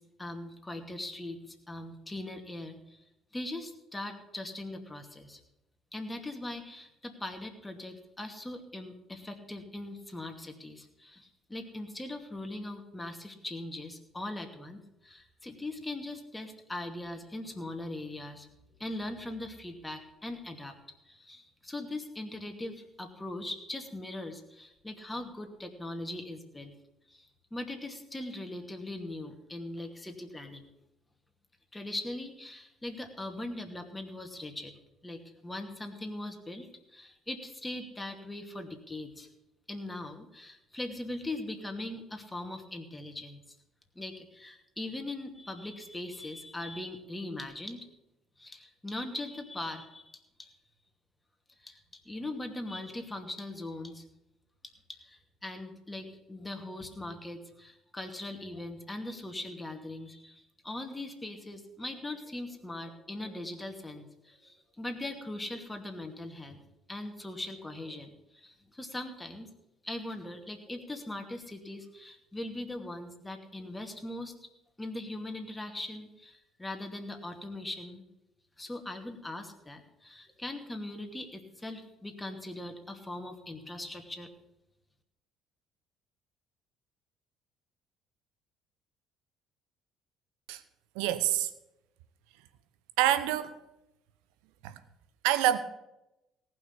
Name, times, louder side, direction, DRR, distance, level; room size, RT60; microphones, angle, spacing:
voice 1, 0.2-3.0 3.3-5.4 5.9-18.5 18.8-20.7 21.1-26.7 27.1-30.7 31.7-34.7 35.0-39.3 39.7-43.4 44.0-47.9 48.4-50.5 51.6-54.0 54.9-66.6 66.9-69.5 69.8-74.3 74.8-78.0 78.6-84.3, left 1 dB, 15° left, 2.5 m, -40 dB
voice 2, 90.9-91.5 93.0-93.6 94.6-94.8 95.2-95.6, right 12 dB, 75° right, 0.9 m, -26 dB
18.0 x 6.1 x 7.2 m
hypercardioid pair, 55°, 0 cm